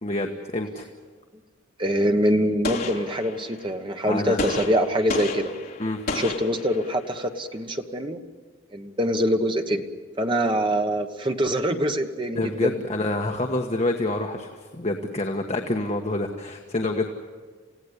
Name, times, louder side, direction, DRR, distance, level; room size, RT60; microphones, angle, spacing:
voice 1, 0.0-0.8 4.1-4.6 5.8-6.0 12.4-17.1, left 2 dB, 35° left, 2 dB, 1.3 m, -27 dB
voice 2, 1.8-5.5 6.1-8.2 8.7-9.8 10.2-12.7, equal, 25° right, 5 dB, 1.3 m, -24 dB
Gunshot gunfire, 2.6-3.7 4.4-7.2, left 3 dB, 50° left, 3.3 m, -32 dB
28.5 x 16.5 x 8.2 m, 1.5 s
head